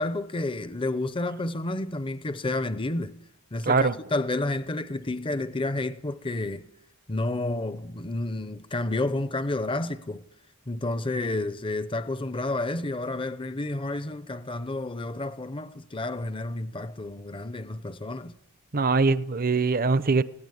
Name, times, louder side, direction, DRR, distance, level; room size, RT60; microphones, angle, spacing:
voice 1, 0.0-3.2 3.5-6.7 7.1-10.2 10.7-18.3, left 2 dB, 25° left, 0.7 m, -30 dB
voice 2, 3.7-4.0 18.7-20.2, right 4 dB, 40° right, 0.7 m, -22 dB
19.5 x 17.0 x 9.9 m
head